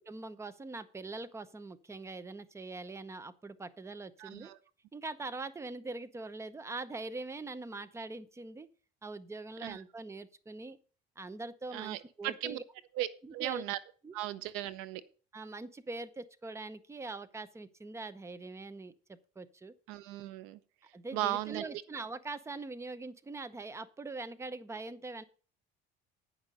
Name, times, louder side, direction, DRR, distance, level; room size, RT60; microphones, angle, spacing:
voice 1, 0.1-4.5 4.9-8.7 9.0-10.8 11.2-12.6 13.2-13.6 14.0-14.2 15.3-19.7 20.9-25.2, right 3 dB, 15° right, 13 dB, 0.8 m, -43 dB
voice 2, 4.2-4.5 9.6-9.8 11.7-12.6 13.0-13.8 14.1-15.0 19.9-20.6 21.1-21.7, right 15 dB, 85° right, 16 dB, 0.8 m, -36 dB
9.5 x 5.8 x 6.3 m, 0.39 s
cardioid pair, 115°, 21 cm